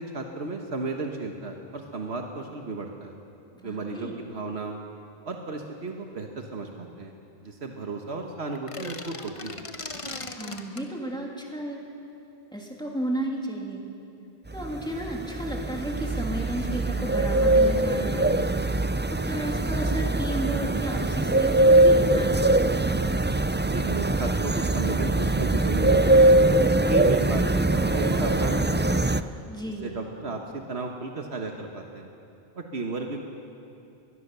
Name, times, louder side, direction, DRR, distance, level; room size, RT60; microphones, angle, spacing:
voice 1, 0.0-3.1 3.6-4.8 5.3-7.1 7.4-9.6 23.7-26.3 26.9-29.1 29.8-32.1 32.6-33.3, right 3 dB, 85° right, 2 dB, 1.7 m, -34 dB
voice 2, 3.5-4.2 10.4-11.8 12.5-13.8 14.5-18.5 19.1-22.4 29.5-30.0, right 1 dB, 5° left, -1 dB, 3.0 m, -33 dB
sound 1, 8.5-10.9, left 2 dB, 30° left, 1.2 m, -38 dB
sound 2, 14.5-29.2, right 2 dB, 20° right, 0.3 m, -22 dB
22.0 x 21.5 x 6.9 m, 2.7 s
omnidirectional pair, 1.1 m